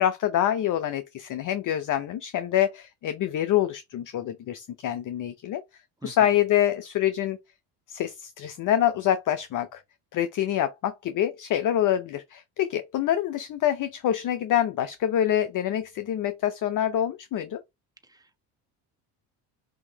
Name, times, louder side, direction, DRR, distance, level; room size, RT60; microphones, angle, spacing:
voice 1, 0.0-5.6 6.0-7.4 7.9-9.8 10.1-17.6, left 11 dB, 45° left, 0.6 m, -26 dB
voice 2, 6.0-6.4 18.0-18.4, right 2 dB, 10° right, 1.3 m, -45 dB
6.1 x 2.8 x 2.8 m
supercardioid pair, 80°, 46 cm